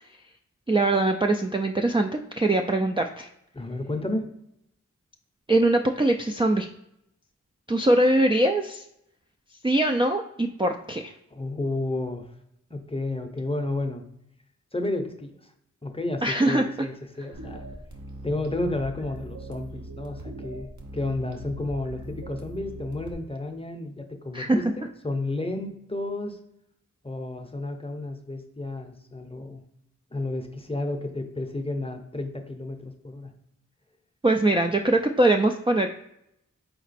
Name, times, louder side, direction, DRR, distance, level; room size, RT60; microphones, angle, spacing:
voice 1, 0.7-3.3 5.5-6.7 7.7-8.8 9.6-11.1 16.2-16.7 24.3-24.6 34.2-35.9, right 2 dB, 15° right, 3 dB, 0.3 m, -22 dB
voice 2, 3.5-4.3 11.3-12.3 12.7-14.0 14.7-15.3 15.8-17.6 18.2-26.4 27.0-29.6 30.1-33.3, left 2 dB, 20° left, 5 dB, 0.7 m, -31 dB
sound 1, 17.3-23.1, right 1 dB, 65° right, 0.9 m, -40 dB
4.3 x 3.0 x 4.1 m, 0.77 s
wide cardioid pair, 50°, 31 cm